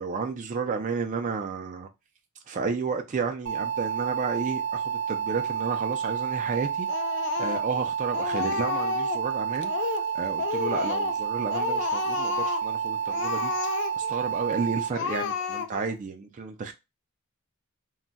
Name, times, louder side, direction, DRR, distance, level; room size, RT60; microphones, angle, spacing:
voice 1, 0.0-1.9 2.5-6.9 7.4-16.7, right 5 dB, 35° right, 0.3 m, -32 dB
sound 1, 3.5-14.9, right 8 dB, 80° right, 0.7 m, -30 dB
Speech, 6.9-7.8 8.1-9.3 9.6-10.1 10.4-11.2 11.5-12.7 13.1-14.2 14.5-14.6 14.9-15.9, left 6 dB, 55° left, 0.3 m, -31 dB
2.3 x 2.1 x 3.8 m
head